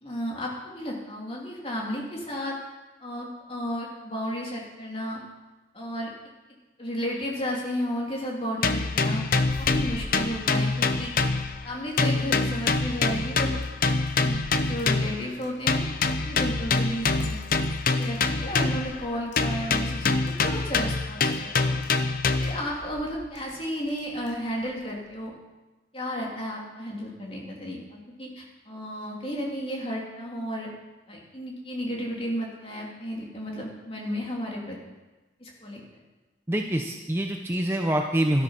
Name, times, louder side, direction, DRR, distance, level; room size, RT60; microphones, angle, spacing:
voice 1, 0.0-2.6 3.0-5.2 5.7-6.1 6.8-9.3 9.6-11.1 11.6-13.6 14.2-15.8 16.2-17.4 17.9-21.7 22.4-25.3 25.9-30.7 31.1-34.8 35.4-35.8, equal, 30° left, -2 dB, 3.0 m, -33 dB
sound 1, 8.6-11.7 12.0-15.3 15.7-19.0 19.4-22.7, left 3 dB, 50° left, 0.7 m, -25 dB
sound 2, 9.4-25.3, left 1 dB, 70° left, 1.1 m, -47 dB
voice 2, 36.5-38.4, right 1 dB, 15° right, 3 dB, 0.7 m, -25 dB
13.0 x 12.5 x 5.7 m, 1.2 s
head